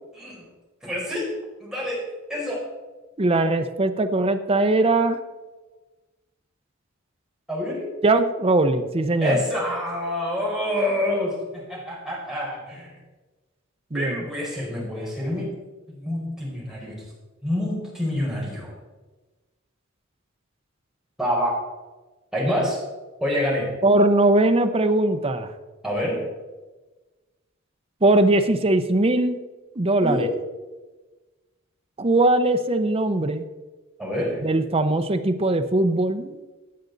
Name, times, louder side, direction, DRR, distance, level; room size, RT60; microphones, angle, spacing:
voice 1, 0.1-0.5 0.8-1.3 1.6-2.0 2.3-2.6 7.5-7.9 9.2-12.9 13.9-15.5 15.9-16.9 17.4-18.7 21.2-21.6 22.3-22.8 23.2-23.7 25.8-26.2 30.0-30.3 34.0-34.4, left 1 dB, 5° right, -5 dB, 4.6 m, -27 dB
voice 2, 3.2-5.2 8.0-9.4 13.9-14.2 23.8-25.5 28.0-29.4 29.8-30.3 32.0-33.4 34.4-36.4, right 2 dB, 30° right, 7 dB, 0.7 m, -20 dB
16.0 x 8.7 x 4.0 m, 1.2 s
head